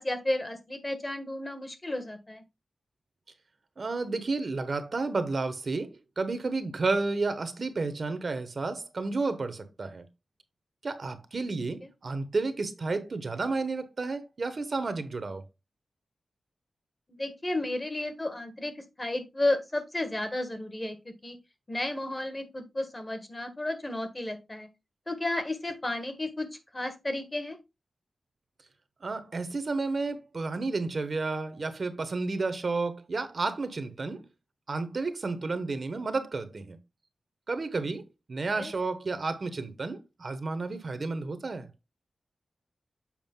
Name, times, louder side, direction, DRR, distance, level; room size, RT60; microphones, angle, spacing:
voice 1, 0.0-2.4 17.1-21.4 21.7-24.7 25.1-26.5 26.7-27.6 38.6-38.7, left 1 dB, 25° left, 1.4 m, -32 dB
voice 2, 3.8-10.1 10.8-15.4 29.0-34.3 34.7-36.8 37.5-41.7, right 3 dB, 50° right, 1.0 m, -31 dB
7.4 x 5.0 x 3.7 m
wide cardioid pair, 105°, 0 cm